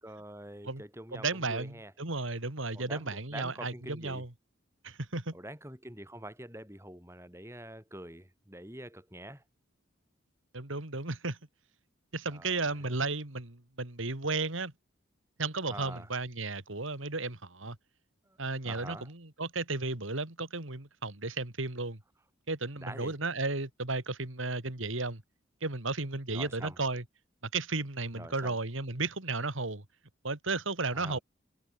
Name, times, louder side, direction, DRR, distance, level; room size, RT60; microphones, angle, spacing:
voice 1, 0.0-1.9 2.7-4.2 5.3-9.4 12.3-13.0 15.7-16.1 18.3-18.4 18.6-19.1 22.8-23.1 26.3-26.8 28.1-28.6 30.9-31.2, right 1 dB, 15° right, 6.6 m, -46 dB
voice 2, 1.1-4.3 4.8-5.3 10.5-11.4 12.1-14.7 15.4-17.8 18.4-22.0 22.5-25.2 25.6-27.0 27.5-29.8 30.2-31.2, right 3 dB, 80° right, 2.7 m, -34 dB
head